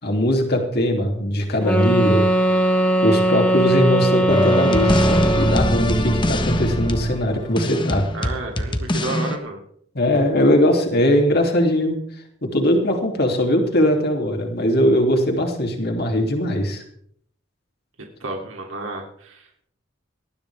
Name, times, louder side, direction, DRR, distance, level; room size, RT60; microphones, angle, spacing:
voice 1, 0.0-2.3 3.0-8.1 9.9-12.0 12.4-16.8, equal, 50° left, 2 dB, 3.1 m, -20 dB
sound 1, 1.6-5.8, right 1 dB, 5° left, 1.7 m, -19 dB
sound 2, 4.3-9.4, left 1 dB, 25° left, 1.3 m, -22 dB
voice 2, 8.1-9.6 18.2-19.7, right 2 dB, 85° right, 1 dB, 2.9 m, -31 dB
19.5 x 13.5 x 3.5 m, 0.65 s
head